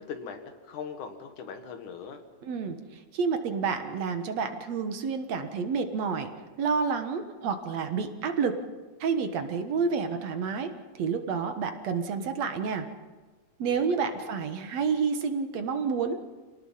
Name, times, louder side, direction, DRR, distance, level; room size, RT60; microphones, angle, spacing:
voice 1, 0.0-2.2 13.6-14.3, left 6 dB, 85° left, 6 dB, 3.2 m, -41 dB
voice 2, 2.4-2.8 3.1-6.3 6.6-8.6 9.0-12.9 13.6-16.2, right 5 dB, 65° right, 7 dB, 2.5 m, -29 dB
27.0 x 18.5 x 5.7 m, 1.3 s
omnidirectional pair, 3.4 m